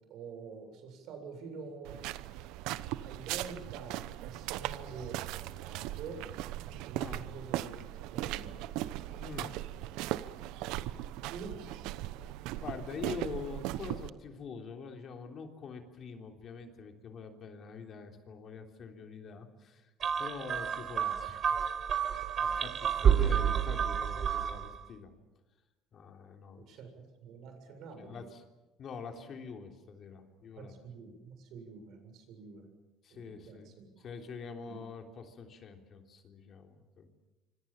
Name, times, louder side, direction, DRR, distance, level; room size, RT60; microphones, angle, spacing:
voice 1, 0.1-2.0 3.0-5.2 5.6-6.2 6.9-7.7 8.1-8.5 11.3-11.6 23.1-23.2 26.7-28.2 30.6-32.7 33.1-34.1 34.7-34.8, right 5 dB, 65° right, 6 dB, 7.5 m, -46 dB
sound 1, 1.8-14.1, right 14 dB, 80° right, 1.0 m, -38 dB
voice 2, 9.2-9.5 12.6-19.9 20.2-21.4 22.4-25.1 25.9-26.7 28.0-28.4 28.8-30.7 33.0-37.1, left 5 dB, 45° left, 4 dB, 3.5 m, -45 dB
sound 2, 20.0-24.8, right 8 dB, 40° right, 1.6 m, -29 dB
26.0 x 25.5 x 7.2 m, 1.1 s
cardioid pair, 130°, 0 cm